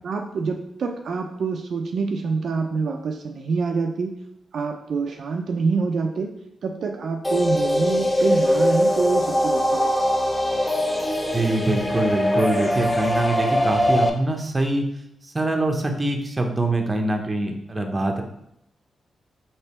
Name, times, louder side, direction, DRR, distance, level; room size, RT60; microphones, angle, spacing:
voice 1, 0.0-4.2 4.5-6.3 6.6-10.0, right 4 dB, 70° right, 3 dB, 0.4 m, -26 dB
sound 1, 7.2-14.1, equal, 15° left, 0.6 m, -22 dB
voice 2, 11.3-14.9 15.2-18.2, right 2 dB, 25° right, 3 dB, 0.7 m, -24 dB
3.4 x 2.9 x 4.2 m, 0.79 s
cardioid pair, 70°, 0 cm